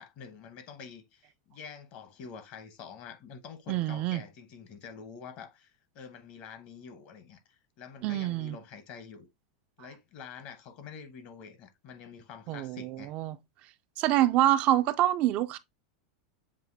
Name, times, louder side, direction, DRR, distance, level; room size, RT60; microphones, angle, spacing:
voice 1, 0.0-9.3 9.8-13.1, left 6 dB, 50° left, 1.1 m, -47 dB
voice 2, 3.7-4.2 8.0-8.6 12.5-13.4 14.0-15.6, right 13 dB, 45° right, 0.4 m, -26 dB
7.2 x 2.7 x 2.6 m
supercardioid pair, 120°, 3 cm